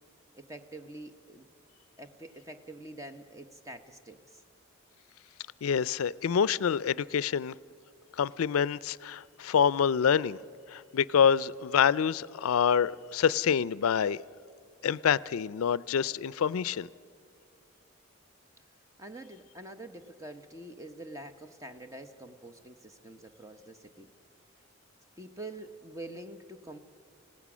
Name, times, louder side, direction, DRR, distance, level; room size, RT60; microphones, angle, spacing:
voice 1, 0.4-1.5 2.0-4.2 19.0-24.1 25.2-26.8, right 1 dB, 15° right, 8 dB, 0.9 m, -45 dB
voice 2, 5.6-7.5 8.2-10.4 10.7-14.2 14.8-16.9, left 7 dB, 90° left, 20 dB, 0.4 m, -26 dB
28.0 x 17.0 x 6.2 m, 2.3 s
head